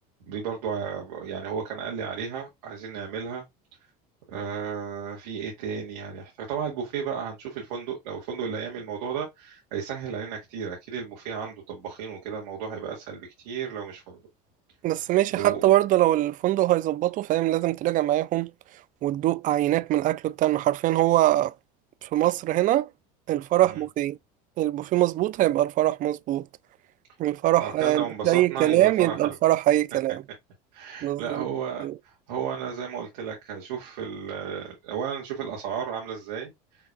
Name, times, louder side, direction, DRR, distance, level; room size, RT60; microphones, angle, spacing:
voice 1, 0.3-3.4 4.3-14.2 15.3-15.6 23.6-23.8 27.6-29.4 30.7-36.5, right 7 dB, 85° right, 1.7 m, -33 dB
voice 2, 14.8-18.5 19.0-21.5 22.0-22.9 23.3-24.2 24.6-26.5 27.2-30.2 31.0-31.5 31.8-31.9, right 15 dB, 40° right, 0.4 m, -23 dB
5.8 x 3.0 x 2.4 m
supercardioid pair, 100°, 20 cm